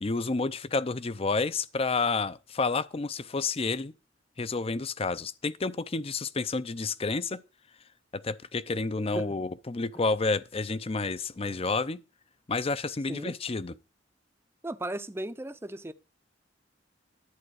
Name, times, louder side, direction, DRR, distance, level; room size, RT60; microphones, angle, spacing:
voice 1, 0.0-3.9 4.4-7.4 8.1-12.0 12.5-13.7, left 3 dB, 30° left, 0.6 m, -30 dB
voice 2, 14.6-15.9, right 1 dB, 15° right, 0.6 m, -36 dB
11.0 x 8.8 x 4.8 m
head